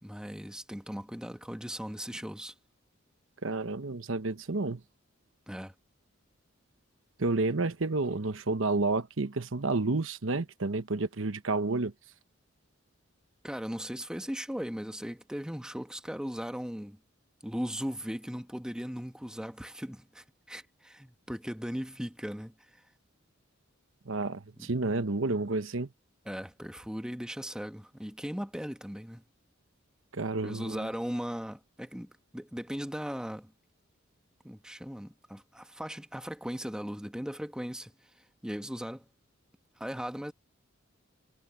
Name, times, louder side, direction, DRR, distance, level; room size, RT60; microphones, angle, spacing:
voice 1, 0.0-2.5 5.5-5.7 13.4-17.0 17.4-22.8 24.6-24.7 26.2-29.2 30.4-33.5 34.4-37.9 38.4-39.0 39.8-40.3, equal, 5° right, 1.2 m, -38 dB
voice 2, 3.4-4.8 7.2-11.9 24.1-25.9 30.1-30.9, right 3 dB, 70° right, 1.0 m, -30 dB
head